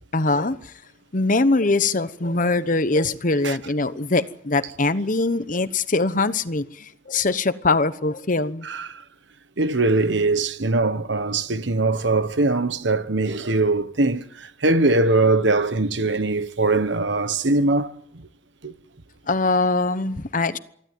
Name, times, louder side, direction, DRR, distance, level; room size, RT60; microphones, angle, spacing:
voice 1, 0.1-0.7 1.1-8.7 19.3-20.6, left 3 dB, 40° left, 1.0 m, -22 dB
voice 2, 8.6-9.0 9.6-17.9 18.6-18.7, right 2 dB, 65° right, 1.2 m, -21 dB
24.5 x 15.0 x 9.2 m
head